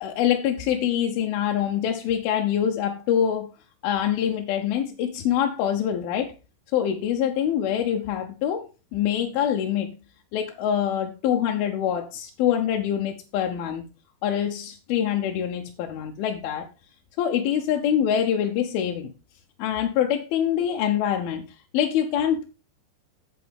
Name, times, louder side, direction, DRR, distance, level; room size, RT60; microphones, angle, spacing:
voice 1, 0.0-3.5 3.8-6.3 6.7-8.7 8.9-9.9 10.3-13.8 14.2-16.7 17.2-19.1 19.6-22.5, left 9 dB, 85° left, 2 dB, 2.7 m, -25 dB
8.6 x 8.3 x 3.5 m, 0.31 s
omnidirectional pair, 4.2 m